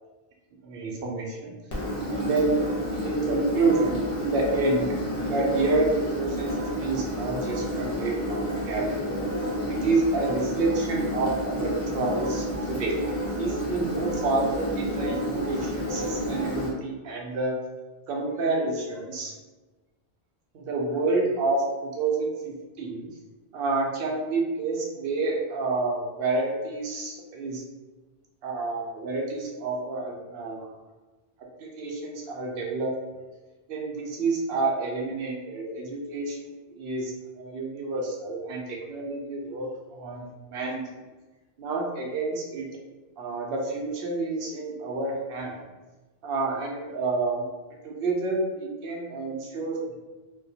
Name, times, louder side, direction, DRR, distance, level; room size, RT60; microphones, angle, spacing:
voice 1, 0.6-1.5 2.1-2.6 2.9-4.9 5.2-9.3 9.7-12.9 13.4-17.6 18.1-19.3 20.5-23.1 23.5-27.6 28.4-30.7 31.6-32.9 33.7-40.8 41.6-42.7 43.2-45.6 46.2-47.4 47.8-49.9, right 3 dB, 70° right, -1 dB, 0.8 m, -29 dB
Engine, 1.7-16.7, equal, 40° left, 0.7 m, -30 dB
2.1 x 2.1 x 2.7 m, 1.2 s
omnidirectional pair, 1.0 m